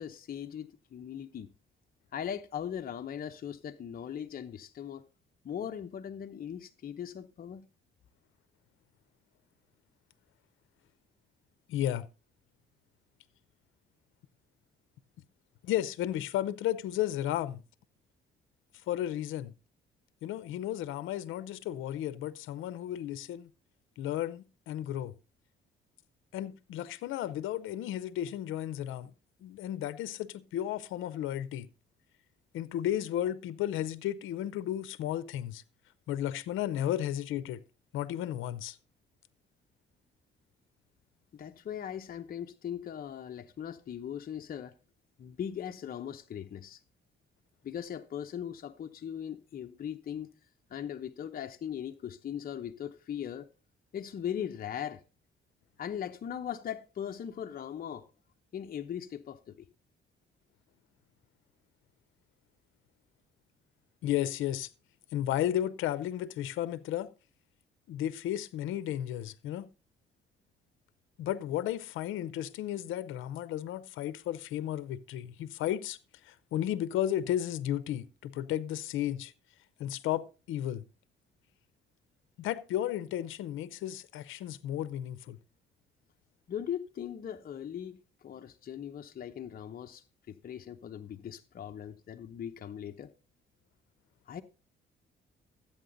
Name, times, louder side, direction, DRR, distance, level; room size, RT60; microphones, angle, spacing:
voice 1, 0.0-1.5 2.1-5.0 5.4-7.7 41.3-44.7 45.2-46.8 47.6-50.3 50.7-53.5 53.9-55.0 55.8-58.1 58.5-59.6 86.5-93.1 94.3-94.4, left 9 dB, 45° left, 0.8 m, -39 dB
voice 2, 11.7-12.1 15.6-17.6 18.9-19.5 20.2-23.5 24.0-25.1 26.3-29.1 29.4-31.7 32.5-35.6 36.1-37.6 37.9-38.8 64.0-64.7 65.1-67.1 67.9-69.7 71.2-76.0 76.2-79.3 79.8-80.8 82.4-85.4, left 12 dB, 85° left, 0.7 m, -33 dB
12.5 x 8.7 x 3.9 m
cardioid pair, 90°, 20 cm